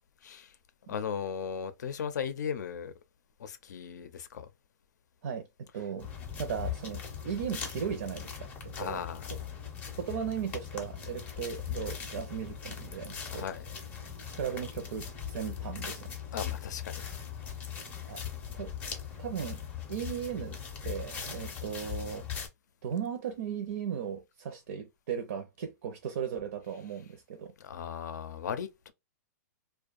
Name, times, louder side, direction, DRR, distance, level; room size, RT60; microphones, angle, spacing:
voice 1, 0.2-0.5 0.9-2.9 3.4-4.5 8.8-9.2 13.2-13.6 16.3-17.0 27.6-28.9, left 7 dB, 85° left, 0.5 m, -37 dB
voice 2, 5.2-6.1 6.4-9.0 9.9-13.5 14.3-16.2 18.1-18.2 18.5-18.7 19.2-19.6 19.9-22.3 22.8-27.5, right 8 dB, 65° right, 0.6 m, -37 dB
sound 1, 6.0-22.5, left 8 dB, 15° left, 0.5 m, -40 dB
2.6 x 2.2 x 2.3 m
hypercardioid pair, 160°, 9 cm